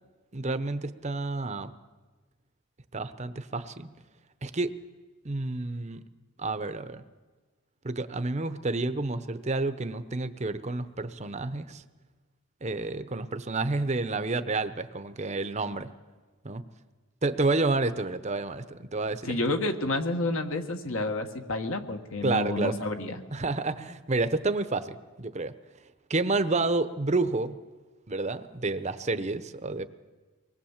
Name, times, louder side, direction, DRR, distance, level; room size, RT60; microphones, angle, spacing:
voice 1, 0.3-1.7 2.9-3.9 4.4-4.8 5.2-6.0 6.4-7.0 7.8-11.8 12.6-15.9 16.4-16.6 17.2-19.4 22.2-22.8 23.3-25.5 26.1-27.6 28.1-29.8, right 3 dB, 30° right, 11 dB, 0.8 m, -29 dB
voice 2, 19.3-23.2, left 2 dB, 65° left, 5 dB, 1.6 m, -30 dB
24.5 x 20.0 x 7.3 m, 1.3 s
head